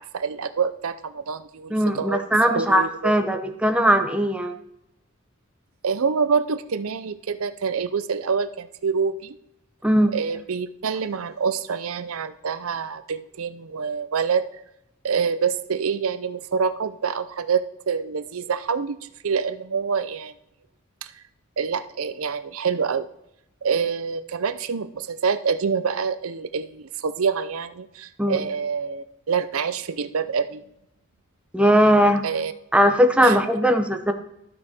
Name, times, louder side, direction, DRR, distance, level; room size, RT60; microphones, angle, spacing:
voice 1, 0.0-2.2 2.5-3.1 5.8-9.4 10.1-14.5 15.0-19.0 19.2-20.3 21.0-21.1 21.6-23.1 23.6-30.6 32.2-32.5 33.2-33.4, right 6 dB, 80° right, 12 dB, 0.6 m, -26 dB
voice 2, 1.7-4.5 9.8-10.1 28.2-28.4 31.5-32.2 32.7-34.1, equal, 5° right, 5 dB, 0.8 m, -19 dB
12.5 x 6.2 x 4.4 m, 0.81 s
head